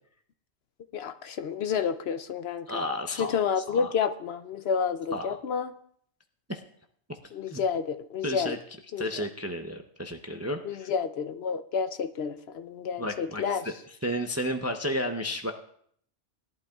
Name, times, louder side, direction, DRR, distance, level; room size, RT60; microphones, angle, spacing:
voice 1, 0.9-2.8 3.2-5.7 7.3-8.5 8.9-9.2 10.6-13.6, left 6 dB, 65° left, 10 dB, 0.8 m, -30 dB
voice 2, 2.7-3.4 3.7-3.9 5.1-5.4 6.5-6.6 7.5-7.6 8.2-8.6 9.0-10.9 13.0-13.7 14.0-15.5, equal, 20° right, 5 dB, 0.5 m, -32 dB
19.5 x 11.5 x 2.3 m, 0.63 s
omnidirectional pair, 1.2 m